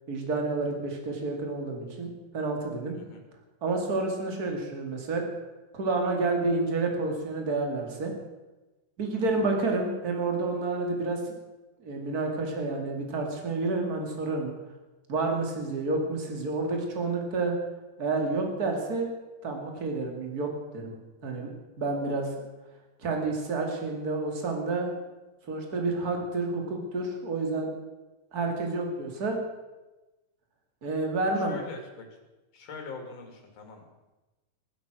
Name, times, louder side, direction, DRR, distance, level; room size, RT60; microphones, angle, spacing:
voice 1, 0.1-3.0 3.6-5.2 5.7-8.1 9.0-11.3 11.8-14.5 15.1-17.5 18.0-19.1 19.4-21.0 21.2-21.5 21.8-22.3 23.0-24.9 25.5-27.7 28.3-29.4 30.8-31.6, right 3 dB, 30° right, 2 dB, 2.6 m, -29 dB
voice 2, 31.4-32.1 32.5-33.9, left 4 dB, 50° left, 3 dB, 3.4 m, -43 dB
15.5 x 12.5 x 6.3 m, 1.1 s
omnidirectional pair, 3.7 m